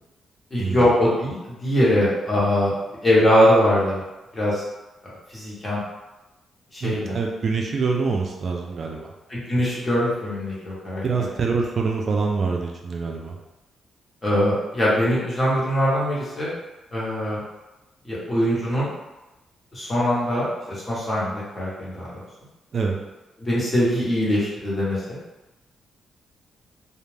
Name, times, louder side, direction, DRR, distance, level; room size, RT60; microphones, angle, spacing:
voice 1, 0.5-2.7 3.0-4.0 4.3-4.6 5.3-5.8 6.7-7.2 9.3-11.3 14.2-16.5 16.9-17.4 18.0-18.9 19.7-22.2 23.4-25.2, equal, 25° left, -7 dB, 1.1 m, -22 dB
voice 2, 6.8-9.1 11.0-13.4 22.7-23.0, right 4 dB, 50° right, 1 dB, 0.3 m, -25 dB
2.4 x 2.1 x 3.2 m, 1.0 s
cardioid pair, 110°, 0 cm